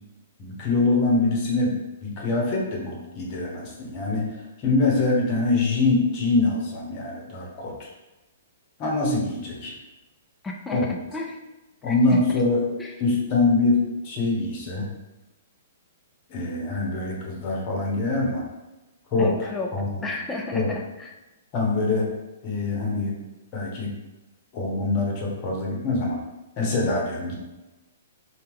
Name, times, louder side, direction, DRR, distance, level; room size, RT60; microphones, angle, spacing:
voice 1, 0.4-1.7 2.0-7.9 8.8-9.7 10.7-11.0 11.8-12.6 13.0-14.9 16.3-18.4 19.1-19.4 19.7-20.0 20.5-20.7 21.5-22.1 22.4-23.2 23.5-23.9 24.5-26.2 26.6-27.4, left 3 dB, 40° left, -1 dB, 1.0 m, -24 dB
voice 2, 10.4-11.4 11.8-12.5 12.8-12.9 19.2-21.1, left 2 dB, 10° left, 0 dB, 0.4 m, -33 dB
2.8 x 2.2 x 3.6 m, 1.0 s
hypercardioid pair, 125°, 0 cm